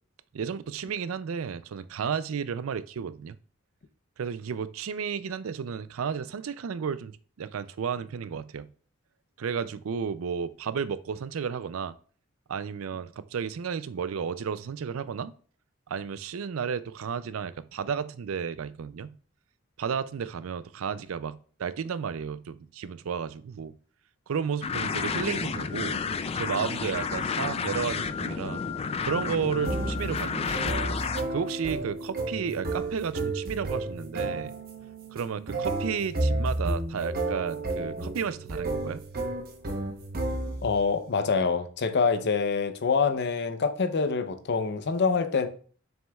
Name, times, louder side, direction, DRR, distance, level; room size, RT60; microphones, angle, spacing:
voice 1, 0.3-3.4 4.2-8.7 9.4-11.9 12.5-15.3 15.9-19.1 19.8-23.8 24.3-26.0 26.3-28.6 29.0-30.7 31.3-34.5 35.1-39.0, right 6 dB, 80° right, 0.4 m, -32 dB
sound 1, 24.6-31.2, left 5 dB, 30° left, 0.3 m, -31 dB
sound 2, 29.6-40.8, right 2 dB, 50° right, 1.0 m, -32 dB
voice 2, 40.6-45.5, left 5 dB, 55° left, 0.7 m, -26 dB
7.2 x 6.1 x 2.3 m
head